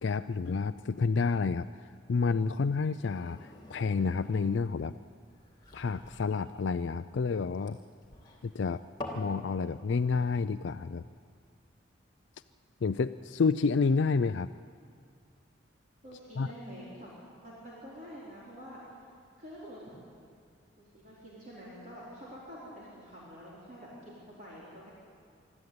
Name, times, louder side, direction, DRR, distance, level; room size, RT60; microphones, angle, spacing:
voice 1, 0.0-1.7 2.1-4.9 5.7-7.8 8.4-8.8 9.1-11.0 12.8-14.5 16.4-16.5, left 4 dB, 75° left, 11 dB, 0.4 m, -29 dB
sound 1, 2.8-9.3, left 1 dB, 20° left, 2.9 m, -47 dB
voice 2, 16.0-17.1 17.4-18.8 19.4-20.0 20.8-24.9, equal, 40° right, -7 dB, 4.4 m, -47 dB
23.5 x 13.5 x 9.5 m, 2.2 s
head